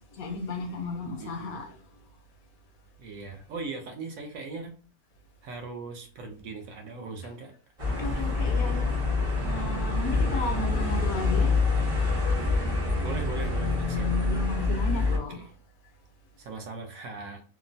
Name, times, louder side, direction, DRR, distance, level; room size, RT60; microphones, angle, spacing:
voice 1, 0.1-1.8 7.9-8.9 9.4-11.7 14.2-15.4, left 2 dB, 70° left, 1.0 m, -35 dB
voice 2, 1.2-1.6 3.0-4.7 5.4-7.5 8.0-8.4 10.5-11.0 13.0-14.1 15.3-15.5 16.4-17.4, right 3 dB, 70° right, 0.9 m, -40 dB
sound 1, 7.8-15.2, left 3 dB, 30° right, 0.6 m, -26 dB
2.9 x 2.0 x 2.5 m
omnidirectional pair, 1.7 m